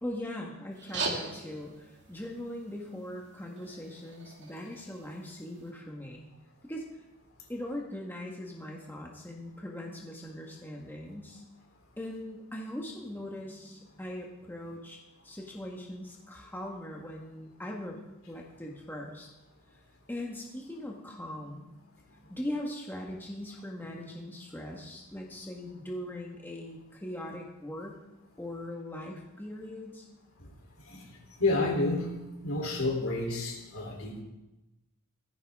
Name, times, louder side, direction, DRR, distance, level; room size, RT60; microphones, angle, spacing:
voice 1, 0.0-6.3 6.6-6.8 7.5-11.4 12.0-18.0 18.3-19.3 19.7-19.8 20.1-28.0 28.4-30.1, left 1 dB, 10° left, -1 dB, 1.5 m, -40 dB
Inside piano contact mic tinkle strum, 0.7-5.7, right 3 dB, 55° right, 2.3 m, -41 dB
voice 2, 30.8-32.1 32.4-34.2, left 2 dB, 65° left, 1 dB, 3.5 m, -30 dB
17.0 x 14.0 x 3.6 m, 0.96 s
head